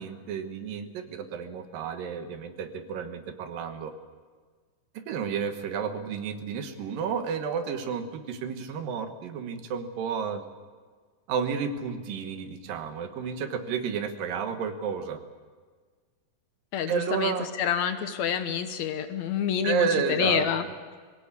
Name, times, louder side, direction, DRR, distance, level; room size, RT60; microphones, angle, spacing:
voice 1, 0.0-3.9 5.1-10.4 11.3-15.2 16.9-17.5 19.6-20.5, right 6 dB, 85° right, 7 dB, 3.0 m, -31 dB
voice 2, 16.7-20.6, left 8 dB, 65° left, 9 dB, 2.2 m, -28 dB
21.0 x 17.5 x 8.3 m, 1.5 s
omnidirectional pair, 3.9 m